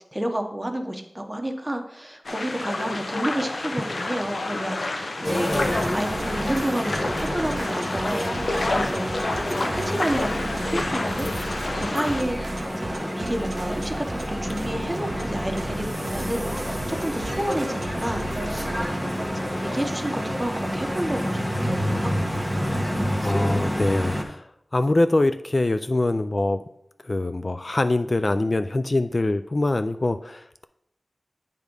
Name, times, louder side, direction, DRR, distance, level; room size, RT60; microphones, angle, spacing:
voice 1, 0.1-5.5 5.9-22.9, right 1 dB, 15° right, 5 dB, 0.9 m, -31 dB
sound 1, 2.2-12.2, left 2 dB, 80° left, 0.7 m, -29 dB
sound 2, 5.2-24.2, equal, 10° left, 1.0 m, -29 dB
sound 3, 5.5-20.9, right 2 dB, 75° right, 0.6 m, -37 dB
voice 2, 23.2-24.5 24.7-26.6 27.0-30.6, left 2 dB, 45° left, 10 dB, 0.3 m, -24 dB
8.3 x 3.5 x 5.2 m, 0.77 s
wide cardioid pair, 60°, 0 cm